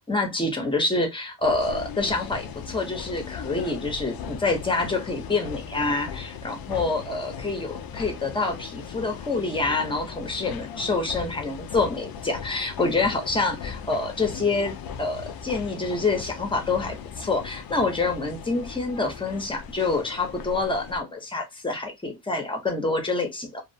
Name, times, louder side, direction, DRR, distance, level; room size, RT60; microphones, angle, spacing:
voice 1, 0.1-23.6, left 3 dB, 10° left, 0.7 m, -27 dB
sound 1, 1.4-21.0, left 7 dB, 55° left, 0.5 m, -38 dB
2.7 x 2.0 x 2.6 m
cardioid pair, 115°, 44 cm